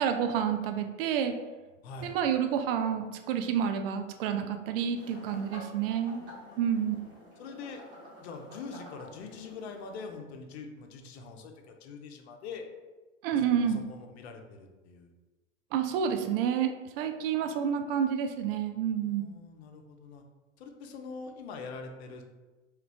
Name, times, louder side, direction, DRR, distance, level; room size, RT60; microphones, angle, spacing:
voice 1, 0.0-1.3 2.0-6.2 6.6-7.0 13.2-13.8 15.7-16.7 17.0-19.3, right 8 dB, 50° right, 6 dB, 0.4 m, -29 dB
voice 2, 1.8-2.2 6.2-6.9 7.4-7.8 8.2-12.7 13.3-15.1 19.0-20.2 20.6-22.2, left 4 dB, 55° left, 4 dB, 0.6 m, -44 dB
sound 1, 4.9-10.2, equal, 30° right, 1.4 m, -50 dB
3.0 x 2.3 x 3.4 m, 1.2 s
figure-of-eight pair, 90°, 38 cm